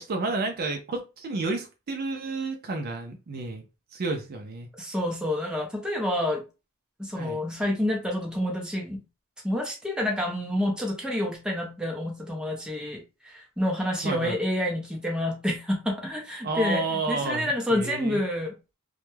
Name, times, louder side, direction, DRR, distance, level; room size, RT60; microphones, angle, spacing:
voice 1, 0.0-3.6 3.9-4.7 7.1-7.4 14.0-14.4 16.4-18.2, right 3 dB, 45° right, 0.4 m, -31 dB
voice 2, 4.8-6.4 7.0-9.0 9.4-18.5, left 1 dB, 5° right, 0.6 m, -28 dB
2.2 x 2.1 x 3.1 m
head